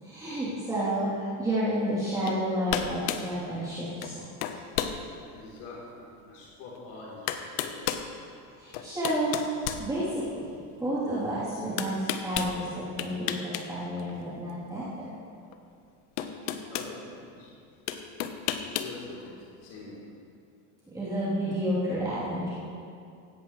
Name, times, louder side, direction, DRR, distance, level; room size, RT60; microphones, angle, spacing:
voice 1, 0.0-4.3 8.6-9.4 9.8-10.5 10.8-15.1 20.9-22.5, right 1 dB, 10° right, -12 dB, 3.4 m, -30 dB
sound 1, 2.3-2.4 2.7-3.3 4.0-4.2 4.4-5.0 5.6-5.7 6.8-6.9 7.3-8.1 8.7-10.4 11.8-12.5 13.0-13.7 14.0-14.1 15.5-15.6 16.2-16.9 17.9-18.9, left 10 dB, 80° left, 1.1 m, -32 dB
voice 2, 5.3-7.8 16.7-17.5 18.6-20.0, left 3 dB, 65° left, -5 dB, 3.7 m, -44 dB
17.5 x 16.5 x 3.3 m, 2.5 s
cardioid pair, 155°, 40 cm